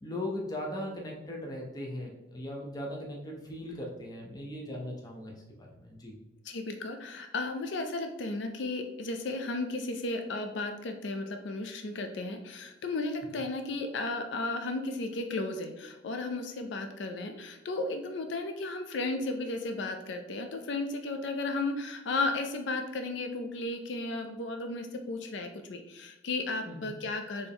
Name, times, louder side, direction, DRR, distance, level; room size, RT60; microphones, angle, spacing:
voice 1, 0.0-6.2 26.7-27.0, left 1 dB, 20° left, -2 dB, 0.6 m, -39 dB
voice 2, 6.4-27.5, left 2 dB, 65° left, 5 dB, 0.4 m, -34 dB
4.2 x 3.3 x 3.5 m, 1.0 s
head